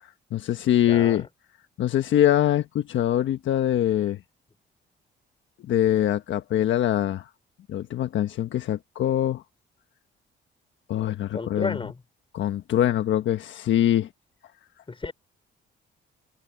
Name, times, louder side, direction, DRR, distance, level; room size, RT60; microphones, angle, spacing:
voice 1, 0.3-1.2 1.8-4.2 5.6-7.3 7.7-9.4 10.9-11.8 12.3-14.1, left 11 dB, 70° left, 1.3 m, -23 dB
voice 2, 0.9-1.3 11.3-12.0 14.9-15.1, left 3 dB, 25° left, 4.3 m, -32 dB
cardioid pair, 90°, 20 cm